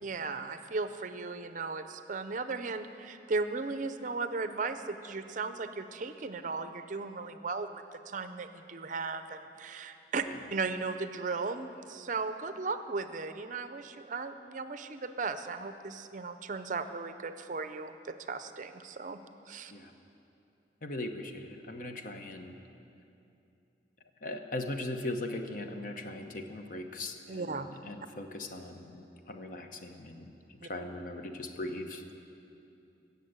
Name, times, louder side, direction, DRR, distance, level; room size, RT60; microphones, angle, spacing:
voice 1, 0.0-10.2 10.5-19.2 19.5-19.7 27.3-27.7 30.6-30.7, right 4 dB, 45° right, 10 dB, 0.5 m, -36 dB
voice 2, 20.8-22.6 24.2-32.0, left 2 dB, 45° left, 5 dB, 0.9 m, -39 dB
16.5 x 6.9 x 8.0 m, 2.7 s
head